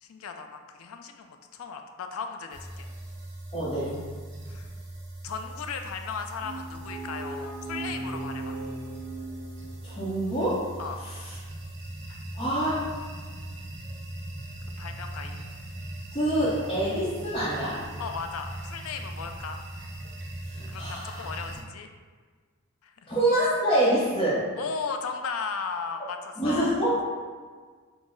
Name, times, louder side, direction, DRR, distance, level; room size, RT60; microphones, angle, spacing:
voice 1, 0.0-2.9 4.5-4.7 5.2-8.6 10.8-11.0 12.1-12.2 14.8-15.5 18.0-19.6 20.7-21.9 22.8-22.9 24.6-26.7, left 5 dB, 75° left, 6 dB, 0.4 m, -36 dB
sound 1, 2.5-21.6, right 1 dB, 50° right, 1.1 m, -40 dB
voice 2, 3.5-4.0 9.8-10.7 11.0-11.4 12.3-12.9 16.1-17.8 20.5-21.2 23.1-24.4 26.4-27.0, right 1 dB, 20° left, -10 dB, 0.7 m, -26 dB
sound 2, 6.4-10.2, right 2 dB, 90° right, 0.7 m, -38 dB
5.9 x 2.0 x 3.7 m, 1.5 s
head